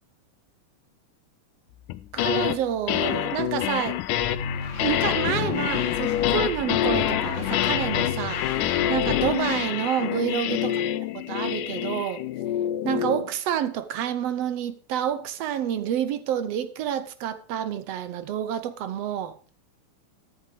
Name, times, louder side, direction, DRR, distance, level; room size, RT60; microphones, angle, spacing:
sound 1, 1.9-2.6 2.9-13.3, left 12 dB, 90° left, 2.3 m, -26 dB
voice 1, 2.1-4.0 4.8-10.8 11.3-12.2 12.8-19.4, right 9 dB, 70° right, 1.6 m, -28 dB
sound 2, 4.2-9.5, left 5 dB, 55° left, 0.8 m, -34 dB
14.0 x 11.0 x 3.4 m
omnidirectional pair, 3.6 m